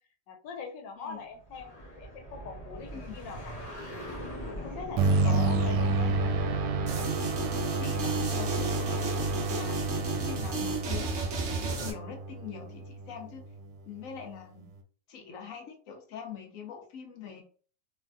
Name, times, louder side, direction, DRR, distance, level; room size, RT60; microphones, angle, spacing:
voice 1, 0.3-3.6 4.5-6.1, left 5 dB, 85° left, 4 dB, 1.4 m, -42 dB
sound 1, 1.4-8.0, equal, 30° left, 0.7 m, -43 dB
sound 2, 5.0-13.7, right 3 dB, 80° right, 1.2 m, -30 dB
voice 2, 5.1-5.8 7.8-9.1 9.5-13.5 13.9-14.7 15.1-17.4, left 7 dB, 60° left, 4 dB, 0.9 m, -43 dB
sound 3, 6.9-11.9, right 3 dB, 60° right, 0.7 m, -33 dB
3.2 x 2.5 x 2.2 m, 0.42 s
omnidirectional pair, 1.9 m